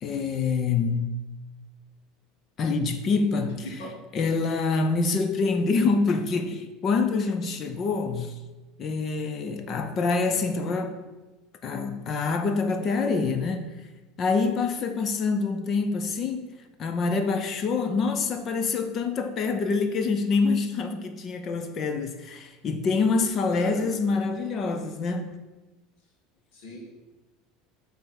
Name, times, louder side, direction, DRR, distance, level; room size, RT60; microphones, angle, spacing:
voice 1, 0.0-1.2 2.6-3.8 4.1-8.3 8.8-11.0 11.6-13.7 14.2-16.5 16.8-25.3, left 4 dB, 35° left, 0.6 m, -26 dB
voice 2, 23.5-24.1 26.5-26.8, left 2 dB, 60° left, 1.8 m, -39 dB
7.7 x 3.5 x 5.9 m
cardioid pair, 150°, 0 cm